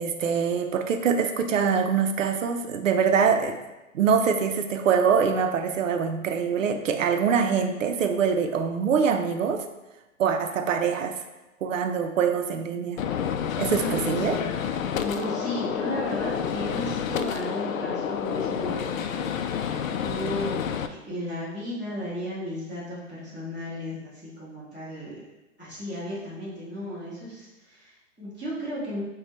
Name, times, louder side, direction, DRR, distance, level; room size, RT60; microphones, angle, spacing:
voice 1, 0.0-3.6 3.9-9.7 10.2-11.2 11.6-13.0 13.6-14.4, right 6 dB, 75° right, 6 dB, 0.6 m, -24 dB
Gunshot gunfire, 13.0-20.9, left 8 dB, 90° left, 0.5 m, -29 dB
voice 2, 13.7-14.6 15.0-19.6 19.9-25.2 25.6-29.0, equal, 5° left, -18 dB, 0.4 m, -35 dB
6.5 x 2.3 x 3.0 m, 1.0 s
hypercardioid pair, 165°, 39 cm